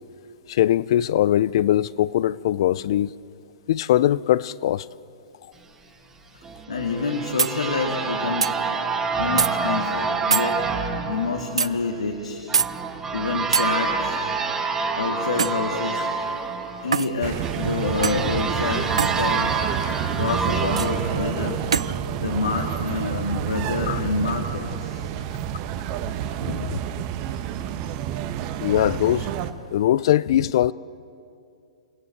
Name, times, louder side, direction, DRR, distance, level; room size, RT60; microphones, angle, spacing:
voice 1, 0.5-3.1 3.7-4.9 23.9-24.0 26.4-26.8 28.6-29.3 29.7-30.7, left 12 dB, 60° left, 0.5 m, -21 dB
sound 1, 6.4-22.1, right 4 dB, 15° right, 2.2 m, -28 dB
voice 2, 6.7-8.6 9.2-10.6 11.1-12.4 13.1-14.2 14.9-16.1 16.8-19.6 20.1-21.6 22.1-25.0, left 4 dB, 85° left, 2.4 m, -27 dB
sound 2, 7.4-7.6 8.4-8.5 9.4-9.5 10.3-10.5 11.6-11.7 12.5-12.7 13.5-13.7 15.4-15.6 16.9-17.1 18.0-18.3 19.0-19.2 20.8-20.9 21.7-21.9, right 6 dB, 85° right, 0.5 m, -22 dB
sound 3, 17.2-29.5, right 10 dB, 40° right, 1.3 m, -29 dB
29.5 x 16.5 x 7.9 m
hypercardioid pair, 120°, 3 cm